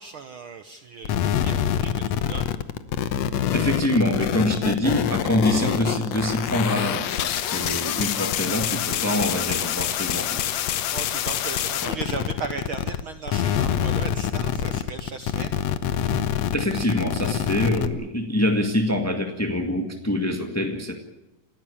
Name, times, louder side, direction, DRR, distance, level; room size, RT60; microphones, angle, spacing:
voice 1, 0.0-2.6 10.9-15.6, right 5 dB, 75° right, 9 dB, 1.2 m, -36 dB
sound 1, 1.0-13.0 13.3-17.9, left 10 dB, 65° left, 1.9 m, -26 dB
voice 2, 3.5-10.4 11.8-11.9 16.5-21.0, left 1 dB, 10° left, 4 dB, 0.8 m, -25 dB
29.5 x 14.0 x 8.6 m, 0.98 s
omnidirectional pair, 3.8 m